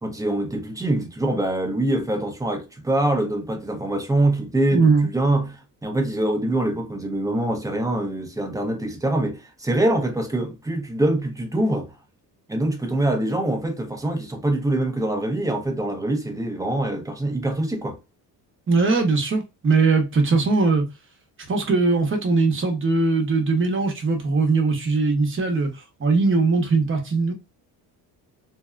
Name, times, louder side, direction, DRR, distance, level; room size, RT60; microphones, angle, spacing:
voice 1, 0.0-11.9 12.5-18.0, right 1 dB, 10° right, 0.7 m, -24 dB
voice 2, 4.7-5.1 18.7-20.8 21.5-27.3, right 4 dB, 30° right, 0.9 m, -20 dB
2.7 x 2.2 x 2.4 m
cardioid pair, 90°, 41 cm